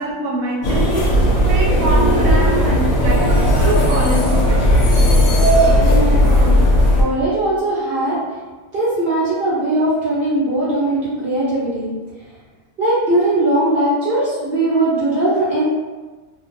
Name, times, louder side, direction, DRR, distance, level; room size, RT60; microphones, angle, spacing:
voice 1, 0.0-5.0, right 1 dB, 75° right, -2 dB, 1.0 m, -25 dB
sound 1, 0.6-7.0, equal, 80° left, 1.0 m, -14 dB
voice 2, 5.8-6.5 6.9-8.2 8.7-11.9 12.8-15.6, right 1 dB, 55° right, -9 dB, 0.8 m, -19 dB
2.5 x 2.2 x 2.6 m, 1.3 s
omnidirectional pair, 1.4 m